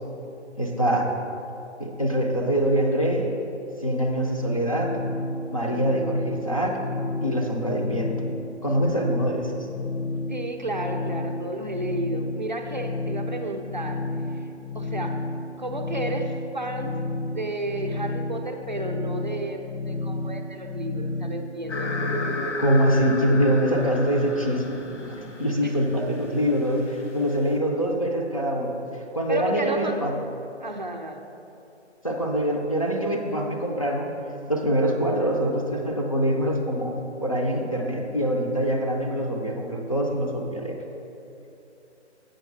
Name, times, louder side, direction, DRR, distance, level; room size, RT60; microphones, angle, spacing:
voice 1, 0.6-1.1 1.8-3.3 3.8-5.0 5.5-6.8 7.2-8.1 8.6-9.5 22.6-24.6 25.1-30.1 32.0-34.1 34.5-40.8, equal, 30° left, -1 dB, 0.5 m, -24 dB
sound 1, 4.4-22.6, left 2 dB, 65° left, 0.9 m, -32 dB
voice 2, 10.3-14.0 14.7-15.2 15.6-22.0 25.6-25.7 29.3-30.0 30.6-31.2, right 2 dB, 40° right, 3 dB, 0.5 m, -32 dB
sound 2, 21.7-27.5, left 2 dB, 90° left, 1.5 m, -33 dB
7.9 x 6.4 x 4.5 m, 2.8 s
hypercardioid pair, 170°, 35 cm